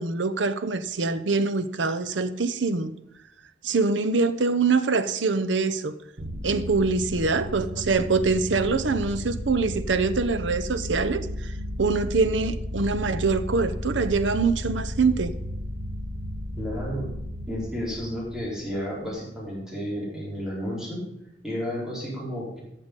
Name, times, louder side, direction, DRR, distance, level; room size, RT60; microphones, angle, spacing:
voice 1, 0.0-2.9 3.6-6.0 6.4-15.3, right 4 dB, 85° right, 11 dB, 0.8 m, -24 dB
sound 1, 6.2-19.1, equal, 70° right, 1.3 m, -34 dB
voice 2, 16.6-17.1 17.5-21.0 21.4-22.6, equal, 5° right, -5 dB, 4.2 m, -32 dB
13.0 x 7.0 x 5.3 m, 0.84 s
head